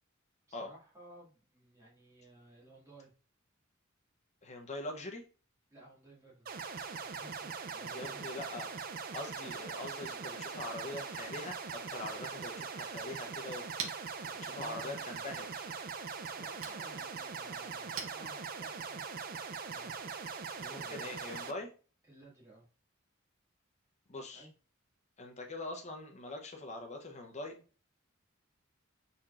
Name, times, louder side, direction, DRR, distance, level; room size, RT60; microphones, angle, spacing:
voice 1, 0.5-3.1 5.7-6.5 7.0-8.1 9.4-9.5 14.1-15.2 16.2-19.1 19.5-20.0 20.6-21.0 22.0-22.7 24.3-24.5, right 2 dB, 15° right, -6 dB, 2.0 m, -56 dB
voice 2, 4.4-5.2 7.9-8.7 9.1-14.1 14.4-15.7 20.7-21.7 24.1-24.5 25.2-27.6, left 2 dB, 35° left, 3 dB, 0.8 m, -43 dB
sound 1, 6.5-21.5, right 5 dB, 45° right, 0.4 m, -41 dB
Chink clink, 13.2-18.9, right 6 dB, 65° right, 0.8 m, -48 dB
4.4 x 4.3 x 2.5 m, 0.36 s
head